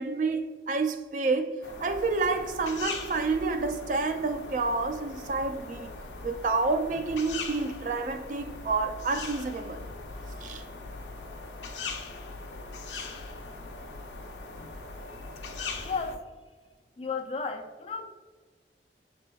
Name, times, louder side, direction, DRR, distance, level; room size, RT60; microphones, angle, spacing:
voice 1, 0.0-5.9 6.2-9.8 10.4-10.6, right 3 dB, 45° right, 0.3 m, -29 dB
sound 1, 1.6-16.2, left 3 dB, 85° left, 0.5 m, -40 dB
voice 2, 15.8-16.3 17.0-18.1, left 4 dB, 30° left, 0.4 m, -34 dB
5.7 x 3.4 x 2.3 m
head